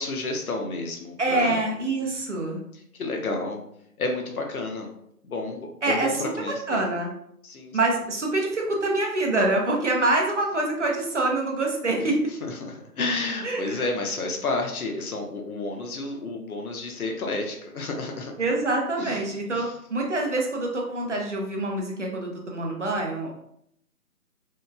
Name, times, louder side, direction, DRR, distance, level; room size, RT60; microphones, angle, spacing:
voice 1, 0.0-1.6 2.0-2.2 2.9-3.6 4.0-4.9 5.2-6.8 7.4-7.8 12.5-12.6 13.0-18.3 19.0-19.2 19.5-19.7, left 3 dB, 65° left, 2 dB, 0.7 m, -30 dB
voice 2, 1.2-2.6 5.8-6.1 6.7-7.1 7.7-12.2 13.4-13.9 18.4-23.4, right 2 dB, 50° right, 0 dB, 0.6 m, -25 dB
2.9 x 2.2 x 2.2 m, 0.73 s
figure-of-eight pair, 165°, 46 cm